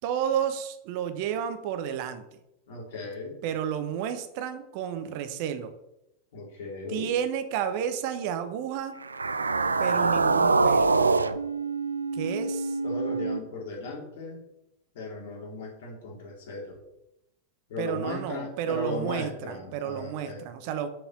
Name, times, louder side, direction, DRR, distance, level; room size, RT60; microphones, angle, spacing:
voice 1, 0.0-2.2 3.4-5.7 6.9-9.0 9.8-11.0 12.1-12.8 17.8-20.9, right 9 dB, 45° right, 9 dB, 1.0 m, -31 dB
voice 2, 2.7-3.4 6.3-7.1 12.8-14.4 14.9-16.8 17.7-20.4, left 3 dB, 55° left, -2 dB, 3.5 m, -36 dB
sound 1, 9.0-13.4, right 4 dB, 75° right, 0.4 m, -25 dB
7.1 x 5.4 x 7.2 m, 0.87 s
figure-of-eight pair, 90°, 0 cm